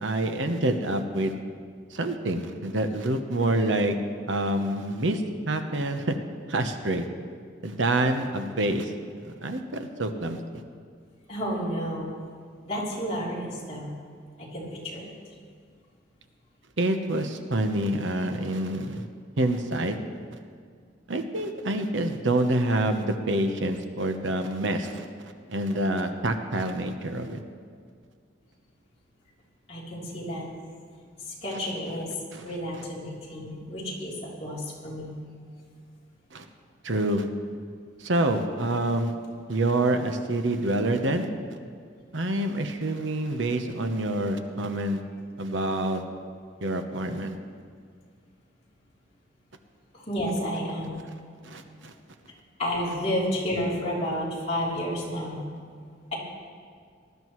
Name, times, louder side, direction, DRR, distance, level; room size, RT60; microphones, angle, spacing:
voice 1, 0.0-1.4 1.9-3.9 4.3-6.1 6.5-7.1 7.6-8.9 9.2-10.6 16.8-19.0 19.4-20.0 21.1-27.4 32.3-32.4 36.3-36.5 36.8-37.3 38.0-39.1 39.5-41.3 42.1-45.0 45.4-46.0 46.6-47.4 51.4-51.9, right 1 dB, 80° right, 7 dB, 1.0 m, -27 dB
voice 2, 11.3-12.1 12.7-13.9 14.4-15.1 29.7-30.5 31.2-32.1 32.4-35.2 49.9-51.0 52.6-55.4, equal, 35° left, -6 dB, 3.4 m, -31 dB
19.0 x 12.5 x 3.2 m, 2.1 s
head